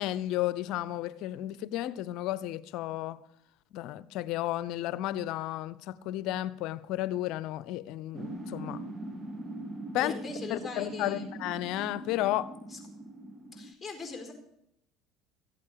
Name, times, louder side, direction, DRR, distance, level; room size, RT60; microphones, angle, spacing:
voice 1, 0.0-3.2 3.7-8.8 9.9-10.2 10.5-12.5, left 14 dB, 65° left, 0.7 m, -33 dB
sound 1, 8.1-13.7, right 1 dB, 25° right, 1.6 m, -41 dB
voice 2, 10.0-11.3 12.7-12.8 13.5-14.3, left 4 dB, 10° left, 4.6 m, -41 dB
15.0 x 8.8 x 6.7 m
hypercardioid pair, 80°, 0 cm